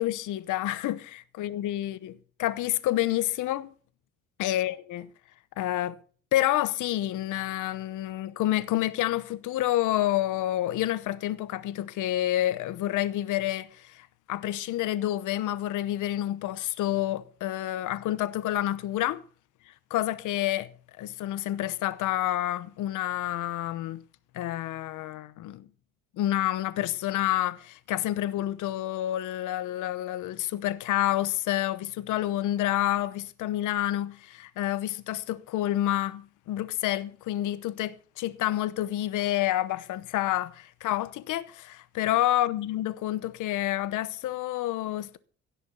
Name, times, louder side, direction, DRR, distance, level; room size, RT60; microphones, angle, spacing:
voice 1, 0.0-2.1 2.4-3.7 4.4-5.0 5.6-6.0 6.3-19.2 19.9-20.7 21.0-24.0 24.3-25.7 26.2-45.2, left 14 dB, 85° left, 0.9 m, -29 dB
17.0 x 6.9 x 6.9 m
cardioid pair, 90°, 30 cm